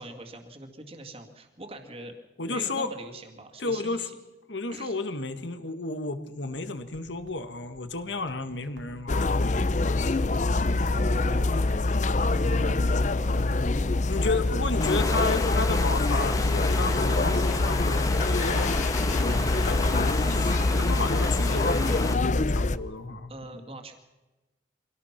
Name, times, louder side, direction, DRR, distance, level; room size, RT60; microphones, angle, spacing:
voice 1, 0.0-2.2 2.4-4.2 4.7-5.0 10.9-12.1 12.3-14.2 23.3-23.9, right 1 dB, 30° right, 4 dB, 2.2 m, -43 dB
voice 2, 2.4-2.9 3.6-4.1 4.5-9.6 14.1-18.8 19.6-19.8 20.1-23.6, left 3 dB, 75° left, 10 dB, 1.8 m, -32 dB
sound 1, 6.5-15.3, right 1 dB, 80° right, 2.4 m, -51 dB
sound 2, 9.1-22.8, left 2 dB, 40° left, 0.6 m, -25 dB
Water, 14.8-22.1, left 2 dB, 20° left, 1.4 m, -32 dB
24.5 x 17.5 x 6.0 m, 1.1 s
head